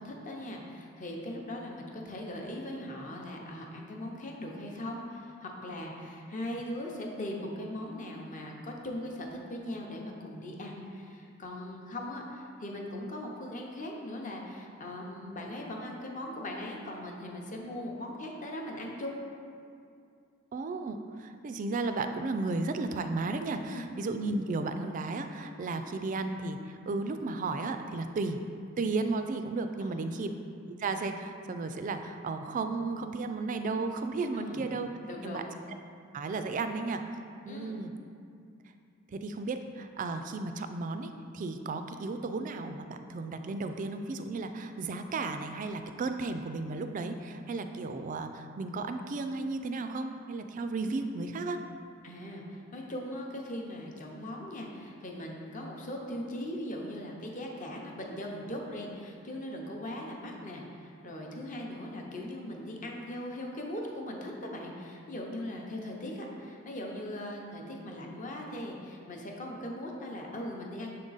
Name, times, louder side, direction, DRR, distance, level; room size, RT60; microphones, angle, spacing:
voice 1, 0.0-19.2 23.7-23.8 29.8-30.3 34.3-34.6 35.1-35.5 37.5-37.7 52.0-71.0, left 1 dB, 40° left, 0 dB, 0.7 m, -39 dB
voice 2, 20.5-28.4 28.8-30.3 30.8-34.9 35.2-35.4 36.1-37.0 37.5-37.9 39.1-51.6, right 3 dB, 40° right, 7 dB, 0.3 m, -34 dB
6.7 x 3.7 x 4.0 m, 2.4 s
head